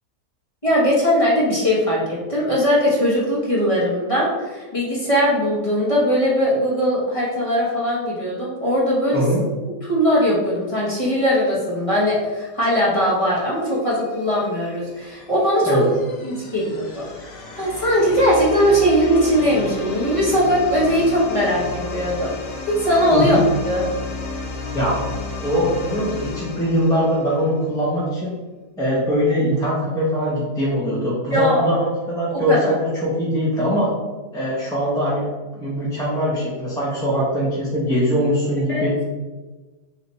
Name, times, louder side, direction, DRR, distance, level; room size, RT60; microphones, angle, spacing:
voice 1, 0.6-9.2 9.8-15.8 16.2-17.1 17.5-22.3 22.7-23.4 23.7-23.9 31.3-31.8 32.3-32.6 38.7-38.8, equal, 25° left, -7 dB, 1.0 m, -20 dB
voice 2, 9.1-9.4 15.6-15.9 23.1-23.4 24.7-25.0 25.4-28.4 28.8-33.9 34.3-35.3 35.5-38.9, equal, 5° left, -6 dB, 0.4 m, -22 dB
sound 1, 13.8-27.7, left 3 dB, 65° left, 1.1 m, -33 dB
3.3 x 2.9 x 4.0 m, 1.3 s
omnidirectional pair, 1.7 m